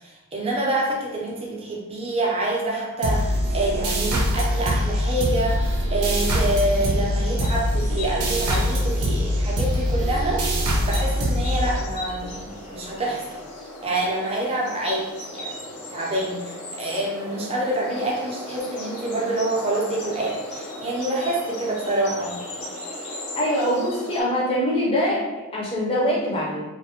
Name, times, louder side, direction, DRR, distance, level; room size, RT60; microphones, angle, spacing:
voice 1, 0.0-13.4 13.8-22.4, right 1 dB, 25° right, -3 dB, 0.4 m, -27 dB
sound 1, 3.0-12.2, equal, 90° right, 0.5 m, -23 dB
sound 2, 5.1-24.2, left 1 dB, 85° left, 0.6 m, -38 dB
voice 2, 23.3-25.2 25.5-26.6, equal, 25° left, -5 dB, 0.5 m, -23 dB
2.3 x 2.1 x 2.7 m, 1.1 s
head